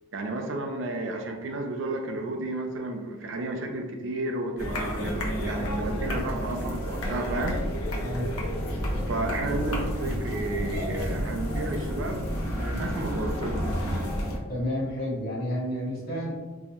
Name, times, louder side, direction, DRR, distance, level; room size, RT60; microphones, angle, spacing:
voice 1, 0.1-7.6 9.1-12.3 12.5-13.6, right 2 dB, 60° right, 4 dB, 0.4 m, -32 dB
sound 1, 4.6-14.4, equal, 90° left, 0.8 m, -30 dB
voice 2, 8.0-8.3 14.5-16.3, equal, 45° left, -5 dB, 1.2 m, -30 dB
4.5 x 2.1 x 2.8 m, 1.2 s
head